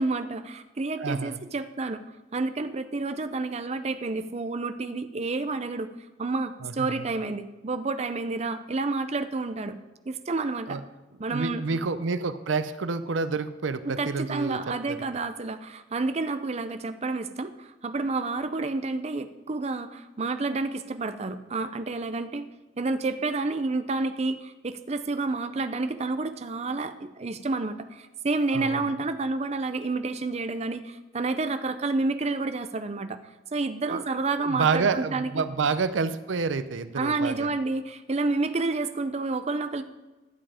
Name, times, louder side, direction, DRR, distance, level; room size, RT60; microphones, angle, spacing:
voice 1, 0.0-2.0 2.3-5.9 6.2-9.8 10.1-10.8 11.2-11.6 13.9-22.5 22.8-33.2 33.5-35.3 37.0-39.8, right 3 dB, 35° right, 10 dB, 0.5 m, -29 dB
voice 2, 1.0-1.5 6.6-7.1 10.7-10.8 11.3-14.6 14.9-15.0 28.5-28.8 33.9-34.0 34.4-37.5, right 4 dB, 90° right, 12 dB, 0.6 m, -28 dB
11.5 x 7.7 x 4.9 m, 1.1 s
head